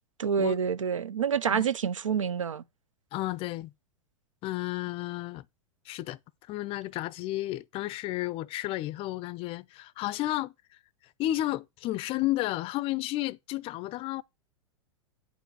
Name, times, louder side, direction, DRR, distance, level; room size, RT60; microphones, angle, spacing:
voice 1, 0.2-2.6, right 7 dB, 90° right, 0.5 m, -27 dB
voice 2, 3.1-3.7 4.4-5.4 5.9-6.2 6.5-10.5 11.2-14.2, left 16 dB, 35° left, 0.4 m, -32 dB
9.0 x 4.6 x 4.6 m
hypercardioid pair, 100°, 16 cm